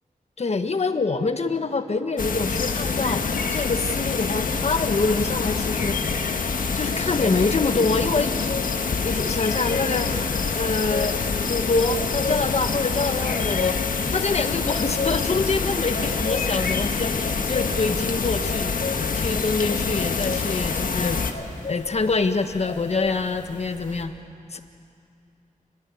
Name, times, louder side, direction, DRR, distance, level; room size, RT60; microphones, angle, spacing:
voice 1, 0.4-3.2 3.5-6.0 6.7-8.3 9.0-10.1 10.5-11.2 11.5-13.8 14.1-21.4 21.7-24.1 24.5-24.6, left 3 dB, 50° left, 8 dB, 1.5 m, -25 dB
sound 1, 2.2-21.3, left 5 dB, 85° left, 1.6 m, -26 dB
sound 2, 6.4-24.0, left 4 dB, 65° left, 3.1 m, -36 dB
29.0 x 22.0 x 8.6 m, 2.5 s
wide cardioid pair, 110°, 14 cm